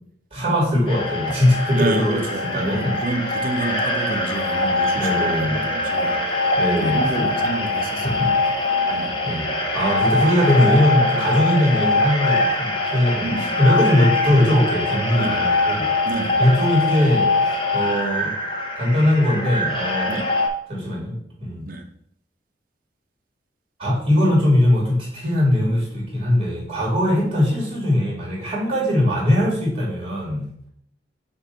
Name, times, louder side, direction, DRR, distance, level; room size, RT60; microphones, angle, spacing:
voice 1, 0.3-2.2 2.5-3.0 4.9-5.6 6.6-7.3 8.0-8.3 8.8-9.4 9.7-13.3 13.6-15.9 16.4-17.3 17.7-18.3 18.7-20.2 20.7-21.7 23.8-30.5, left 1 dB, 30° right, -3 dB, 2.7 m, -20 dB
sound 1, 0.9-20.5, left 2 dB, 30° left, 0.8 m, -23 dB
voice 2, 1.7-9.2 13.2-13.5 15.1-15.4 16.0-16.4 20.1-20.3 21.6-21.8, right 2 dB, 50° right, 4 dB, 0.9 m, -29 dB
6.8 x 2.7 x 5.5 m, 0.68 s
head